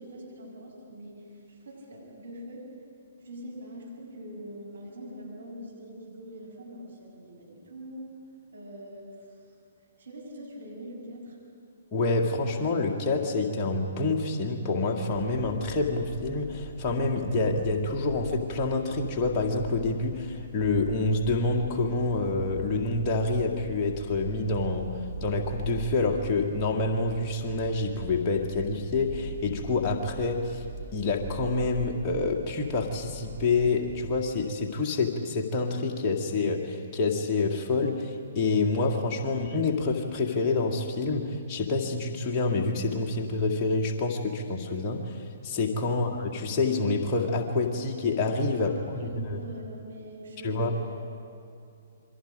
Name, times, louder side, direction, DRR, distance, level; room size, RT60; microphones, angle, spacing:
voice 1, 0.0-2.6 3.2-8.1 8.5-9.2 10.0-11.4 39.2-39.4 45.9-46.1 48.6-50.8, equal, 70° right, -2 dB, 7.2 m, -43 dB
voice 2, 11.9-24.9 25.2-30.6 30.9-49.4 50.4-50.7, left 3 dB, 25° left, -1 dB, 2.1 m, -27 dB
sound 1, 15.1-34.2, right 2 dB, 20° right, 3.4 m, -42 dB
28.0 x 23.5 x 5.3 m, 2.5 s
figure-of-eight pair, 125°, 0 cm